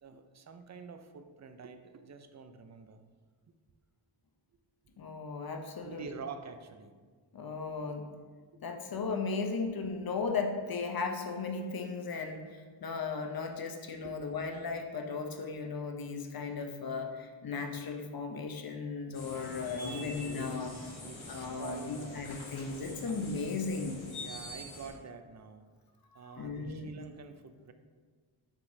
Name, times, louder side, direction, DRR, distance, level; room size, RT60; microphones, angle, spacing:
voice 1, 0.0-3.0 5.8-7.0 14.0-14.1 19.3-19.5 19.7-22.3 23.1-23.2 24.2-25.7 26.1-27.7, right 5 dB, 35° right, 8 dB, 0.4 m, -47 dB
voice 2, 5.0-6.0 7.3-8.1 8.6-20.7 21.3-24.0 26.2-26.9, left 4 dB, 50° left, 4 dB, 0.7 m, -36 dB
sound 1, 19.1-24.9, left 2 dB, 80° left, 1.1 m, -45 dB
6.4 x 2.9 x 2.7 m, 1.5 s
cardioid pair, 50°, 48 cm